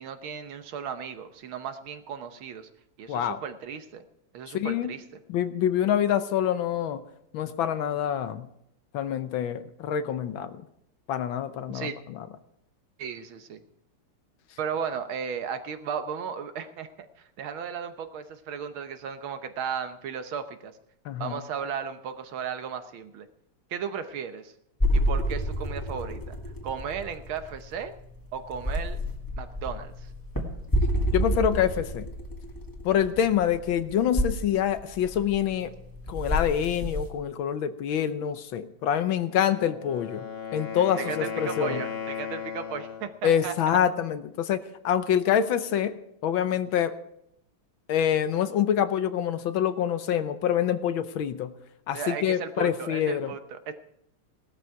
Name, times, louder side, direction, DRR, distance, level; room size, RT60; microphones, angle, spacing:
voice 1, 0.0-2.7 3.0-4.0 4.3-5.0 11.7-12.0 13.0-13.6 14.6-20.7 21.2-23.3 23.7-24.5 24.9-26.4 26.6-27.9 28.3-29.0 29.4-30.1 41.0-43.8 51.9-53.7, right 7 dB, 70° right, 9 dB, 1.7 m, -35 dB
voice 2, 3.1-3.4 4.5-4.9 5.3-7.0 7.3-8.5 8.9-10.6 11.1-12.2 21.0-21.4 31.1-32.1 32.8-35.7 36.1-40.3 40.5-41.8 43.2-46.9 47.9-51.5 51.9-53.3, left 9 dB, 70° left, 12 dB, 1.5 m, -26 dB
sound 1, 24.8-37.1, equal, 10° left, 1.8 m, -29 dB
Wind instrument woodwind instrument, 39.4-43.2, left 7 dB, 35° left, 1.2 m, -36 dB
17.5 x 12.5 x 4.6 m, 0.77 s
omnidirectional pair, 2.4 m